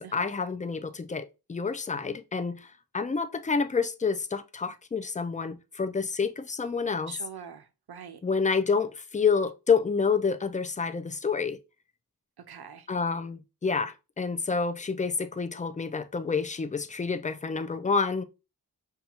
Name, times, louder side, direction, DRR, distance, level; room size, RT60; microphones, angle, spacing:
voice 1, 0.0-2.7 2.9-7.2 8.2-11.6 12.9-18.2, left 5 dB, 20° left, 0.3 m, -28 dB
voice 2, 7.1-8.2 12.5-12.9, right 7 dB, 75° right, 0.6 m, -44 dB
5.4 x 2.3 x 2.8 m
wide cardioid pair, 45°, 39 cm